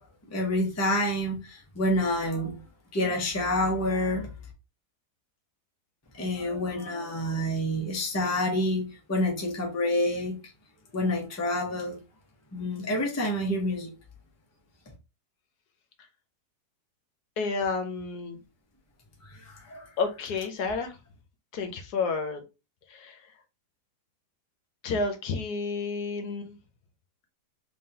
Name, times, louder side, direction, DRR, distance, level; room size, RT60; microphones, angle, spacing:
voice 1, 0.3-2.6 2.9-4.3 6.1-10.4 10.9-12.0 12.5-13.9 19.3-19.9, left 1 dB, 15° left, 0.7 m, -28 dB
voice 2, 17.4-18.4 20.0-21.0 21.5-22.4 22.9-23.2 24.8-26.6, left 4 dB, 75° left, 1.2 m, -30 dB
3.7 x 3.3 x 2.7 m
omnidirectional pair, 1.8 m